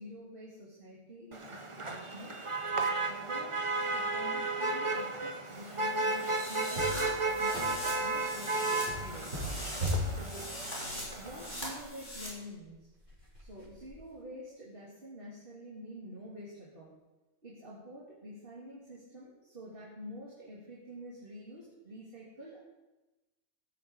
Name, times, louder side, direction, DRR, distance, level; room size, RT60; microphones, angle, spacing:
voice 1, 0.0-2.4 2.7-3.6 3.9-6.9 7.2-9.5 10.0-10.5 11.1-12.9 13.4-16.9 17.4-22.6, equal, 40° right, -6 dB, 3.3 m, -48 dB
Motor vehicle (road), 1.3-11.8, right 3 dB, 25° right, 1.1 m, -34 dB
sound 1, 5.5-12.3, equal, 35° left, 5.2 m, -42 dB
sound 2, 6.8-8.1 8.9-11.5 12.1-12.2 12.6-12.7 13.1-13.9, left 1 dB, 65° right, 6.1 m, -38 dB
18.0 x 8.4 x 5.6 m, 1.1 s
omnidirectional pair, 1.4 m